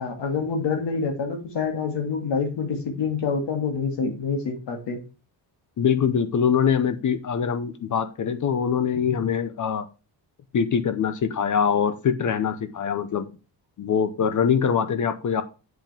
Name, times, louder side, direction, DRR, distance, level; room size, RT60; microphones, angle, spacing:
voice 1, 0.0-5.0, left 5 dB, 65° left, 3 dB, 2.7 m, -27 dB
voice 2, 5.8-9.9 10.5-13.3 13.8-15.4, left 7 dB, 40° left, 11 dB, 0.8 m, -23 dB
7.9 x 7.6 x 3.5 m, 0.31 s
cardioid pair, 170°, 44 cm